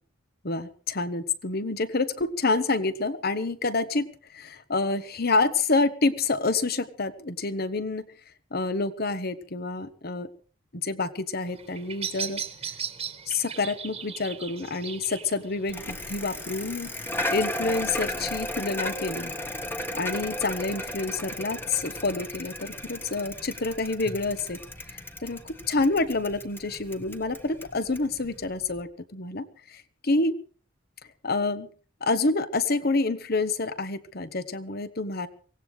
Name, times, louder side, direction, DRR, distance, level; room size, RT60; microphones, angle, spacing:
voice 1, 0.4-8.0 8.5-10.3 10.8-12.4 13.3-16.9 17.3-19.3 19.9-24.6 25.2-30.4 31.2-31.7 32.0-35.3, left 3 dB, 50° left, 13 dB, 1.3 m, -28 dB
Bird vocalization bird call bird song, 11.5-17.5, right 7 dB, 30° right, 1.7 m, -38 dB
Bicycle, 15.7-28.8, left 1 dB, 10° left, 1.5 m, -35 dB
24.0 x 18.0 x 3.3 m, 0.41 s
head